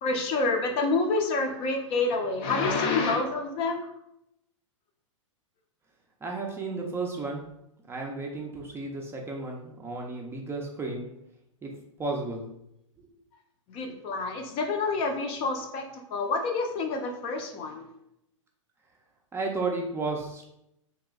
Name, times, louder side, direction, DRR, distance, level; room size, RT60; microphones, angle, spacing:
voice 1, 0.0-3.9 13.7-17.9, left 3 dB, 35° left, 4 dB, 0.6 m, -28 dB
voice 2, 6.2-7.4 7.9-11.0 11.6-11.7 12.0-12.4 13.0-13.1 13.8-14.0 19.3-20.5, right 3 dB, 15° right, 0 dB, 0.5 m, -33 dB
3.0 x 2.9 x 3.5 m, 0.81 s
hypercardioid pair, 120°, 17 cm